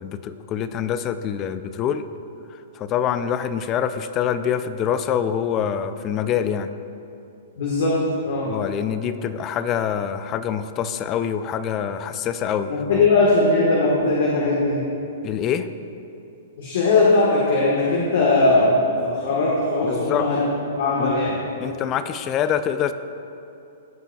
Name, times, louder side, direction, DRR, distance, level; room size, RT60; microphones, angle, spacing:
voice 1, 0.0-2.1 2.5-6.7 8.5-13.1 15.2-15.7 19.8-20.3 21.0-21.1 21.6-22.9, left 8 dB, 30° left, 11 dB, 0.4 m, -25 dB
voice 2, 7.6-8.0 8.2-8.5 12.7-14.8 16.6-20.4 20.8-21.3, left 2 dB, 65° left, -5 dB, 1.4 m, -19 dB
15.0 x 5.1 x 2.3 m, 2.7 s
hypercardioid pair, 130°, 0 cm